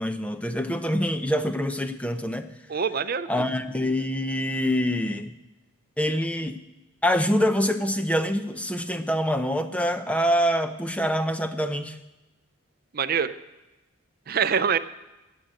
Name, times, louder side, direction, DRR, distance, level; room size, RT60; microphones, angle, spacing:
voice 1, 0.0-2.5 3.3-5.3 6.0-6.6 7.0-12.0, equal, 5° left, 9 dB, 0.6 m, -25 dB
voice 2, 2.7-3.3 12.9-13.3 14.3-14.8, right 6 dB, 45° right, 12 dB, 0.5 m, -24 dB
15.0 x 6.3 x 8.9 m, 1.0 s
head